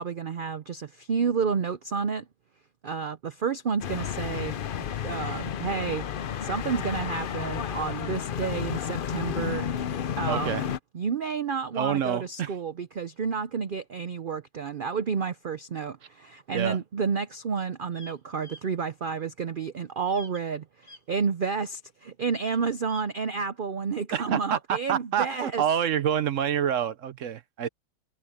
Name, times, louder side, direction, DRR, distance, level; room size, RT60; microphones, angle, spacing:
voice 1, 0.0-2.3 2.8-4.6 5.0-6.1 6.4-9.7 10.2-10.7 10.9-25.6, right 5 dB, 85° right, 0.4 m, -30 dB
sound 1, 3.8-10.8, left 8 dB, 70° left, 0.5 m, -32 dB
voice 2, 10.3-10.7 11.8-12.5 16.5-16.8 24.1-27.7, right 9 dB, 60° right, 0.9 m, -27 dB
sound 2, 17.9-18.2 18.4-18.6 20.1-20.4 20.8-21.0 22.4-23.1, left 1 dB, 45° left, 7.5 m, -47 dB
omnidirectional pair, 1.7 m